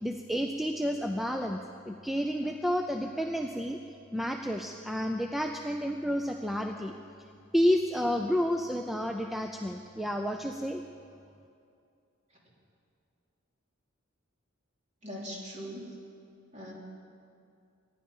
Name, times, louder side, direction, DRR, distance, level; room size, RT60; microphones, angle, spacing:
voice 1, 0.0-1.6 1.9-3.8 4.1-6.9 7.5-10.8, equal, ahead, 3 dB, 0.5 m, -30 dB
voice 2, 15.0-15.9 16.5-16.7, equal, 35° right, -3 dB, 3.2 m, -40 dB
24.5 x 10.5 x 5.5 m, 2.5 s
head